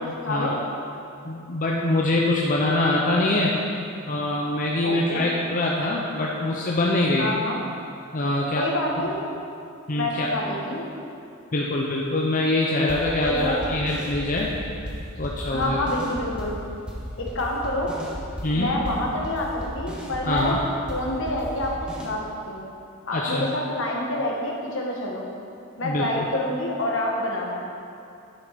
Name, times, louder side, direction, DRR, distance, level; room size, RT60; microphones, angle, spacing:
voice 1, 0.2-0.6 4.8-5.3 7.2-7.6 8.5-9.2 9.9-10.9 13.2-13.7 15.5-16.6 17.2-18.0 18.5-20.6 20.9-22.2 22.5-22.6 23.1-25.3 25.8-27.6, left 1 dB, 65° left, -1 dB, 1.7 m, -27 dB
voice 2, 1.2-3.6 4.1-7.4 8.1-8.6 9.0-9.1 9.9-10.3 11.5-14.5 15.2-15.8 18.4-18.7 20.3-20.6 23.1-23.5 25.8-26.3, left 2 dB, 40° left, -3 dB, 0.8 m, -24 dB
sound 1, 12.9-22.1, equal, 5° right, 1.4 m, -35 dB
10.5 x 7.0 x 5.2 m, 2.5 s
head